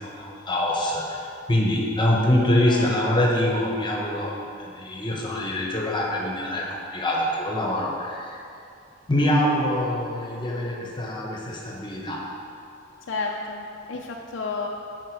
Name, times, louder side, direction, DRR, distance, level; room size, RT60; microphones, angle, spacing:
voice 1, 0.0-8.4 9.1-12.2, left 1 dB, 25° left, -2 dB, 1.1 m, -24 dB
voice 2, 13.1-14.7, left 4 dB, 65° left, 0 dB, 0.5 m, -31 dB
13.0 x 4.4 x 4.7 m, 2.5 s
head